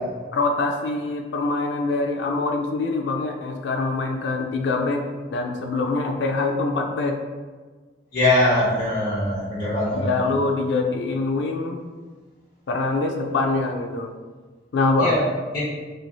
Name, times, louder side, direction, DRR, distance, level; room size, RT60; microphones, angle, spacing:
voice 1, 0.3-5.0 5.3-7.2 9.9-11.8 12.7-14.1 14.7-15.2, left 3 dB, 80° left, 3 dB, 0.4 m, -24 dB
voice 2, 8.1-10.1 15.0-15.2 15.5-15.7, left 1 dB, 45° left, -11 dB, 0.7 m, -21 dB
3.1 x 2.6 x 2.2 m, 1.4 s
head